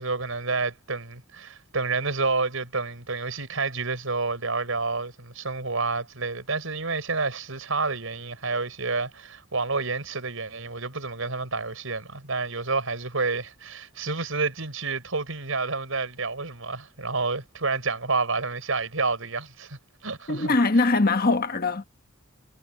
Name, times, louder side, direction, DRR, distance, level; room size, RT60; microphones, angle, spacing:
voice 1, 0.0-20.5, right 3 dB, 80° right, 4.7 m, -29 dB
voice 2, 20.3-21.8, left 3 dB, 45° left, 1.3 m, -22 dB
head